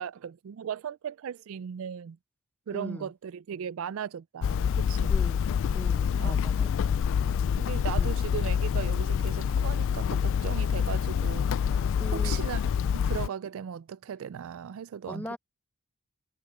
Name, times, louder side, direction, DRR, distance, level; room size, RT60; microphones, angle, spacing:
voice 1, 0.0-2.2 2.7-5.1 6.2-6.4 7.2-12.7 12.9-15.4, right 8 dB, 65° right, 0.3 m, -37 dB
voice 2, 2.7-3.1 5.1-5.4 5.7-7.0 8.0-8.2 12.0-12.4 15.1-15.4, left 1 dB, 5° left, 0.8 m, -39 dB
Hammer, 4.4-13.3, left 7 dB, 60° left, 0.3 m, -26 dB
head